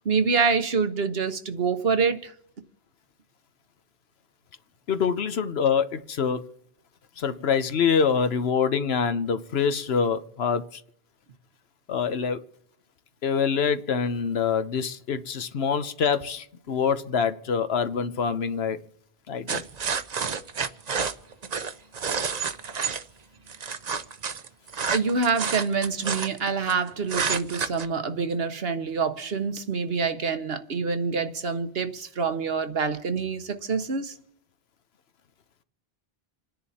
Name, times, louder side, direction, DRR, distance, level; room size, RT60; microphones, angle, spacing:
voice 1, 0.0-2.3 24.9-34.1, right 5 dB, 70° right, 1.4 m, -26 dB
voice 2, 4.9-6.5 7.2-10.8 11.9-12.4 13.2-18.8 19.3-19.6, left 6 dB, 75° left, 1.2 m, -25 dB
sound 1, 19.5-23.0 23.5-26.7 27.1-27.9, right 5 dB, 45° right, 0.8 m, -29 dB
28.0 x 10.0 x 4.2 m
omnidirectional pair, 1.1 m